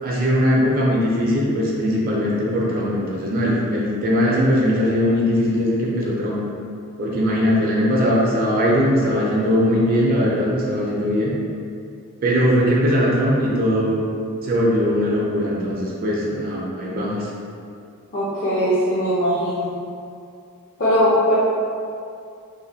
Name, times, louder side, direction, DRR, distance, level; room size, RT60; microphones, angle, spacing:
voice 1, 0.0-6.4 7.0-11.3 12.2-14.0 14.4-17.3, equal, 40° right, -4 dB, 0.4 m, -20 dB
voice 2, 18.1-19.7 20.8-21.4, equal, 45° left, -12 dB, 0.6 m, -20 dB
3.1 x 2.1 x 2.6 m, 2.4 s
head